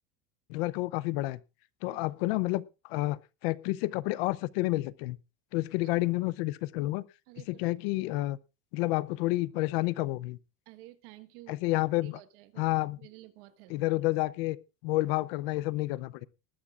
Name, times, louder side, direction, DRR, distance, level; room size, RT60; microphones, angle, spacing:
voice 1, 0.5-1.4 1.8-5.2 5.5-7.0 7.5-8.4 8.7-10.4 11.5-12.2 12.6-13.0 13.7-14.6 14.8-16.3, left 19 dB, 60° left, 18 dB, 0.7 m, -30 dB
voice 2, 7.3-7.6 10.7-12.6 13.0-13.8, right 17 dB, 60° right, 11 dB, 1.4 m, -52 dB
20.5 x 13.0 x 2.5 m, 0.29 s
cardioid pair, 170°, 34 cm